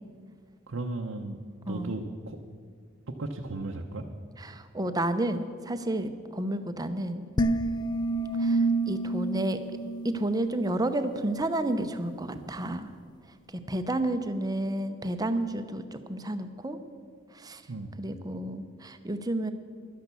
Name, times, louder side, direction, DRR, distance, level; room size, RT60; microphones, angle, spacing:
voice 1, 0.7-1.4 1.7-2.4 3.1-4.0 17.7-18.0, right 2 dB, 80° right, 2 dB, 0.8 m, -35 dB
voice 2, 1.7-2.0 4.4-7.2 8.4-9.6 10.0-12.9 13.7-16.8 17.3-17.6 18.0-19.5, right 1 dB, 20° right, 9 dB, 0.7 m, -31 dB
sound 1, 7.4-10.7, right 2 dB, 20° left, 0.4 m, -28 dB
12.0 x 10.5 x 6.9 m, 2.1 s
head